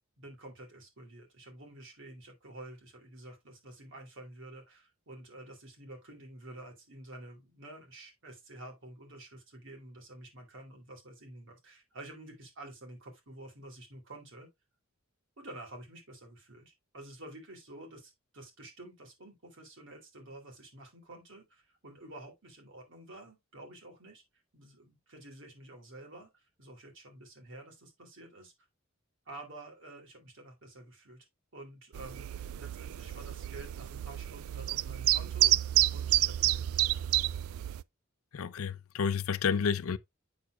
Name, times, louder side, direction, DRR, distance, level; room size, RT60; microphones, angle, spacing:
voice 1, 0.2-14.5 15.4-24.2 24.5-28.5 29.3-31.2 31.5-37.1, right 1 dB, 65° right, 2.7 m, -50 dB
sound 1, 31.9-37.8, right 15 dB, 85° right, 0.3 m, -29 dB
voice 2, 38.3-40.0, left 6 dB, 85° left, 0.5 m, -30 dB
7.9 x 6.4 x 2.3 m
head